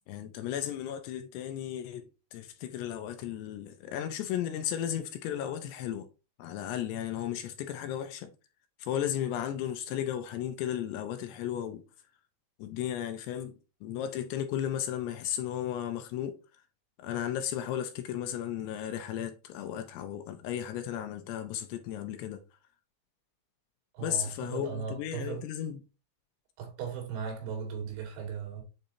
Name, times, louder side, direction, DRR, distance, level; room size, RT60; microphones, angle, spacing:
voice 1, 0.1-6.1 6.4-8.3 8.8-11.8 12.6-13.5 13.8-16.4 17.0-22.4 24.0-25.8, left 10 dB, 80° left, 2.6 m, -35 dB
voice 2, 23.9-25.4 26.6-28.6, right 6 dB, 85° right, 4.7 m, -37 dB
8.9 x 4.0 x 2.7 m
omnidirectional pair, 5.3 m